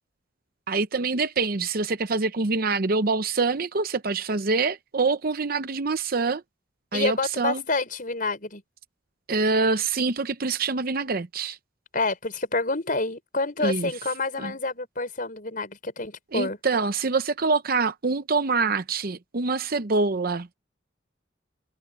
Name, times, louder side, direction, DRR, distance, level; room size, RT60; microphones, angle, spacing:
voice 1, 0.7-6.4 6.9-7.6 9.3-11.6 13.6-13.9 14.4-14.5 16.3-20.5, right 4 dB, 50° right, 0.7 m, -25 dB
voice 2, 6.9-8.6 11.9-16.6, left 3 dB, 45° left, 5.8 m, -28 dB
head